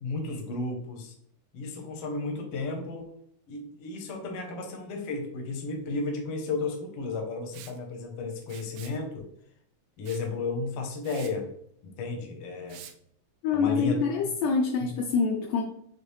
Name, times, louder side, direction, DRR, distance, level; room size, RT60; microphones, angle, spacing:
voice 1, 0.0-1.1 1.5-3.1 3.5-9.3 10.0-11.5 11.8-12.8 13.5-14.0 14.8-14.9, left 3 dB, 70° left, 2 dB, 1.4 m, -33 dB
Liquid, 7.5-7.8 8.4-9.0 10.0-10.3 10.7-10.8 11.0-11.3 12.7-12.9, right 10 dB, 85° right, 2.0 m, -47 dB
voice 2, 13.4-15.6, left 5 dB, 85° left, 1 dB, 1.5 m, -26 dB
7.0 x 2.4 x 3.1 m, 0.69 s
omnidirectional pair, 3.6 m